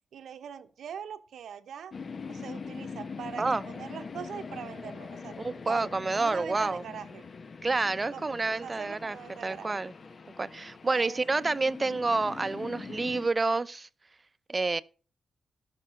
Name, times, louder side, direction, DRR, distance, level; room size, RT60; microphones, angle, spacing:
voice 1, 0.1-1.9 2.3-5.3 5.6-7.2 7.8-9.8 10.9-11.2, right 8 dB, 80° right, 0.8 m, -42 dB
sound 1, 1.9-13.3, left 5 dB, 50° left, 0.9 m, -43 dB
voice 2, 5.4-6.8 7.6-9.1 9.4-9.9 10.4-13.9 14.5-14.8, right 3 dB, 35° right, 0.7 m, -28 dB
13.0 x 6.0 x 5.7 m
cardioid pair, 60°, 0 cm